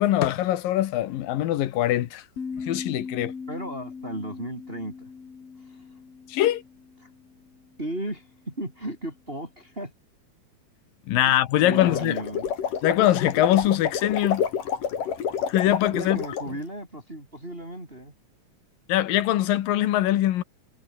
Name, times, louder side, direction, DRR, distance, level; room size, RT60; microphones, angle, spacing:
voice 1, 0.0-2.2 2.6-3.3 6.3-6.6 11.1-12.2 12.8-14.4 15.5-16.2 18.9-20.4, left 13 dB, 90° left, 3.0 m, -22 dB
sound 1, 2.4-7.5, left 5 dB, 45° left, 4.5 m, -39 dB
voice 2, 3.5-5.1 5.6-5.9 7.0-7.1 7.8-9.9 11.1-11.3 11.6-12.4 15.9-18.1, right 1 dB, 15° right, 6.6 m, -35 dB
sound 2, 11.6-16.5, left 7 dB, 75° left, 4.5 m, -29 dB
omnidirectional pair, 3.9 m